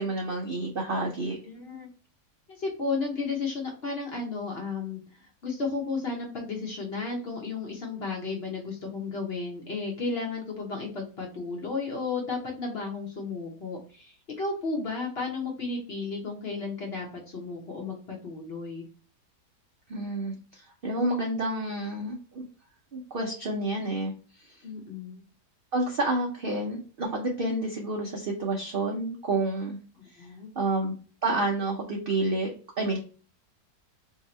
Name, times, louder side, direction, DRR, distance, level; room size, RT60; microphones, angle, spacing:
voice 1, 0.0-1.4 19.9-22.4 22.9-24.6 25.7-29.8 30.1-30.3 30.6-31.0 31.2-33.0, right 2 dB, 65° right, 0 dB, 0.5 m, -29 dB
voice 2, 1.5-1.9 2.5-18.8 24.6-25.2 30.0-30.5, left 4 dB, 50° left, -1 dB, 0.8 m, -33 dB
2.8 x 2.7 x 4.2 m, 0.38 s
omnidirectional pair, 1.8 m